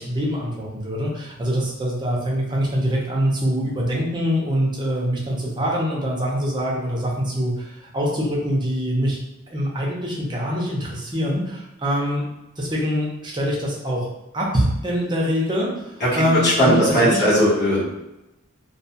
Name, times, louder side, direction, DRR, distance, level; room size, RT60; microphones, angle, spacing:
voice 1, 0.0-9.2 9.5-12.2 12.6-14.1 14.3-17.2, equal, 20° right, -4 dB, 0.7 m, -24 dB
voice 2, 16.0-17.8, equal, 50° left, -9 dB, 1.1 m, -18 dB
2.4 x 2.3 x 2.7 m, 0.93 s
head